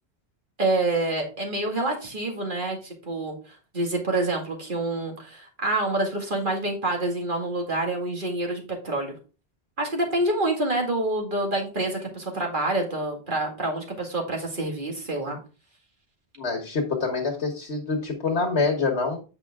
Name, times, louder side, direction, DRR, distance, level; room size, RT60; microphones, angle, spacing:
voice 1, 0.6-9.1 9.8-15.4, right 2 dB, 50° right, 1 dB, 2.2 m, -27 dB
voice 2, 16.4-19.2, left 4 dB, 80° left, 1 dB, 1.6 m, -26 dB
8.6 x 5.5 x 3.6 m, 0.33 s
omnidirectional pair, 1.1 m